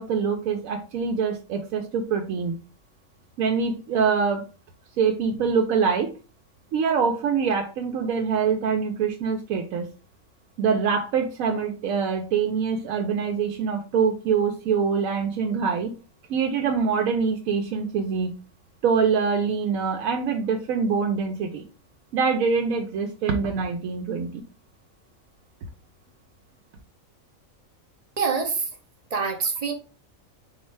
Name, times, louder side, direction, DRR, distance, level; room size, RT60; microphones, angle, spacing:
voice 1, 0.0-2.6 3.4-4.4 5.0-6.1 6.7-9.9 10.6-15.9 16.3-18.4 18.8-21.6 22.1-24.4, right 6 dB, 80° right, 3 dB, 1.0 m, -24 dB
voice 2, 28.2-28.6 29.1-29.7, right 5 dB, 50° right, 4 dB, 0.5 m, -25 dB
4.2 x 2.1 x 4.5 m, 0.33 s
omnidirectional pair, 1.4 m